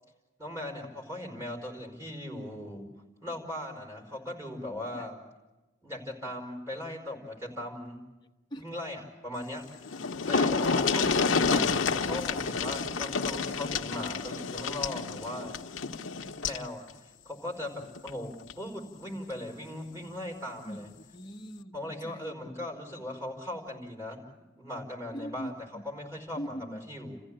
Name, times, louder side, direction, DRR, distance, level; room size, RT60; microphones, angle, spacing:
voice 1, 0.4-2.9 3.2-5.2 5.8-8.0 8.6-10.0 10.3-15.6 16.4-20.9 21.7-24.2 24.6-25.5 25.8-27.2, left 1 dB, 15° right, 4.7 m, -39 dB
sound 1, 9.5-9.6 9.8-16.7 18.0-18.1 18.5-18.6, left 4 dB, 80° left, 0.8 m, -29 dB
voice 2, 10.5-10.9 20.6-22.6 25.1-25.8 26.4-26.8, equal, 20° left, 1.1 m, -42 dB
29.5 x 15.0 x 8.8 m
head